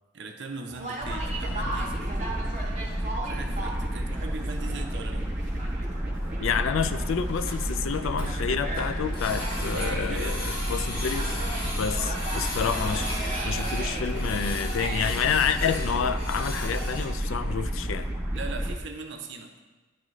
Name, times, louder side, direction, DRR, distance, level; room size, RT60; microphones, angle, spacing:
voice 1, 0.1-2.1 3.2-5.3 9.7-10.5 18.3-19.5, right 4 dB, 55° right, 5 dB, 0.6 m, -39 dB
Conversation, 0.7-15.7, right 2 dB, 35° right, 1.2 m, -38 dB
sound 1, 1.0-18.7, equal, 5° right, 0.9 m, -31 dB
Printer, 5.5-5.6 5.8-5.9 6.2-6.3 6.6-6.7 7.0-7.1 7.3-8.3 8.8-17.1, left 1 dB, 50° left, 1.2 m, -37 dB
voice 2, 6.4-11.4 11.6-18.1, left 7 dB, 75° left, 11 dB, 0.4 m, -29 dB
10.5 x 3.8 x 3.1 m, 1.2 s
head